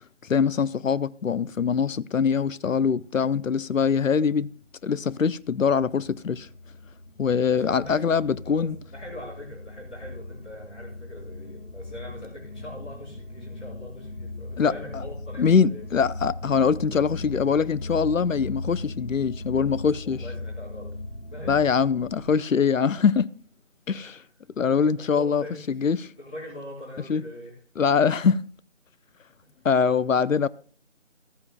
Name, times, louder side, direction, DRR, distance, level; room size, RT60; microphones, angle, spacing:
voice 1, 0.2-4.5 4.8-6.5 7.2-8.8 14.6-15.0 15.4-20.2 21.5-23.3 23.9-24.2 24.6-26.1 27.1-27.2 27.8-28.4 29.6-30.5, left 6 dB, 90° left, 0.6 m, -23 dB
sound 1, 4.8-22.4, left 2 dB, 55° left, 1.4 m, -38 dB
voice 2, 7.4-15.8 20.0-20.9 21.3-21.8 24.0-24.2 25.1-25.8 26.2-27.5 29.8-29.9, left 1 dB, 5° left, 2.3 m, -42 dB
15.5 x 14.5 x 2.2 m
figure-of-eight pair, 170°, 38 cm